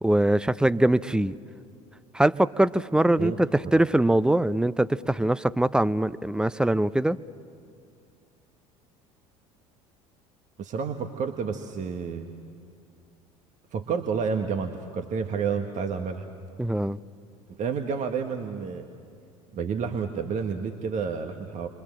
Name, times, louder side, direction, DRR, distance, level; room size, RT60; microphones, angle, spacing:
voice 1, 0.0-1.4 2.1-7.2 16.6-17.0, right 1 dB, 5° right, 15 dB, 0.6 m, -22 dB
voice 2, 10.6-12.2 13.7-16.3 17.5-18.9 19.5-21.7, right 6 dB, 45° right, 5 dB, 1.5 m, -30 dB
29.0 x 24.0 x 7.6 m, 2.4 s
hypercardioid pair, 70°, 18 cm